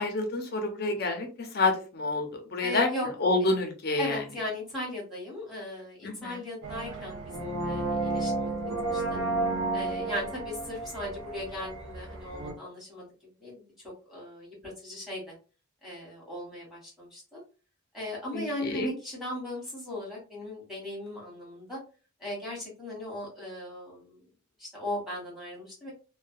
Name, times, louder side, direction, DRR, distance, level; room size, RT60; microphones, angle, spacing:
voice 1, 0.0-2.9 3.2-4.2 6.0-6.4 18.3-18.9, left 2 dB, 45° left, 4 dB, 0.5 m, -28 dB
voice 2, 0.7-1.1 2.6-3.1 4.0-8.5 8.9-9.2 9.7-13.1 13.4-15.3 15.8-17.4 17.9-21.8 22.2-24.2 24.6-25.9, left 1 dB, ahead, -6 dB, 1.2 m, -38 dB
sound 1, 6.6-12.5, right 2 dB, 75° right, 0.5 m, -32 dB
2.3 x 2.1 x 2.5 m, 0.35 s
head